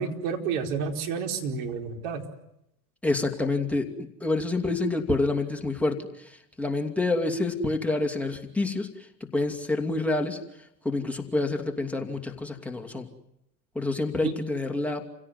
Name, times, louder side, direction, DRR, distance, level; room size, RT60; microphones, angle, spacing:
voice 1, 0.0-2.2 14.2-14.3, right 6 dB, 50° right, 3 dB, 4.8 m, -30 dB
voice 2, 3.0-10.4 10.8-13.1 13.7-15.1, left 2 dB, 5° left, 2 dB, 2.7 m, -28 dB
29.0 x 17.0 x 9.5 m, 0.82 s
hypercardioid pair, 100°, 48 cm